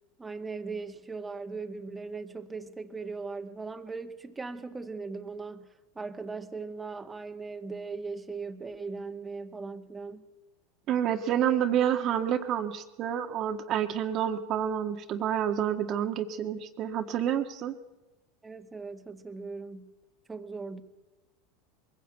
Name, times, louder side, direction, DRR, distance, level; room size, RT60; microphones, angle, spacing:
voice 1, 0.2-5.7 5.9-10.2 18.4-19.9 20.3-20.8, right 4 dB, 15° right, 5 dB, 1.8 m, -39 dB
voice 2, 10.9-17.7, right 9 dB, 45° right, 6 dB, 1.6 m, -28 dB
22.0 x 16.0 x 8.3 m, 1.1 s
hypercardioid pair, 85°, 0 cm